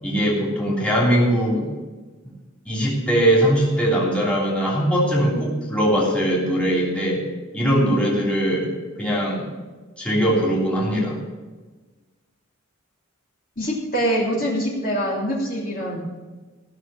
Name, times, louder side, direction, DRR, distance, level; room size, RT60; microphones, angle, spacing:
voice 1, 0.0-1.7 2.6-7.2 7.5-8.7 9.0-9.5 10.0-11.2, equal, 5° left, -5 dB, 3.2 m, -20 dB
voice 2, 13.6-16.0, equal, 45° left, -4 dB, 3.0 m, -24 dB
16.0 x 6.5 x 7.0 m, 1.3 s
head